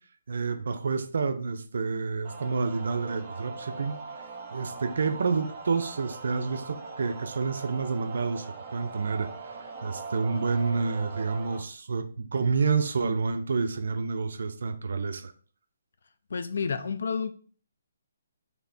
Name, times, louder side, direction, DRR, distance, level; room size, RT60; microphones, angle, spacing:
voice 1, 0.3-4.0 4.5-9.6 9.8-15.3, right 4 dB, 70° right, 0.5 m, -29 dB
sound 1, 2.2-11.6, right 4 dB, 30° right, 0.8 m, -41 dB
voice 2, 16.3-17.3, left 5 dB, 70° left, 0.4 m, -30 dB
3.3 x 2.8 x 4.0 m
hypercardioid pair, 160°, 0 cm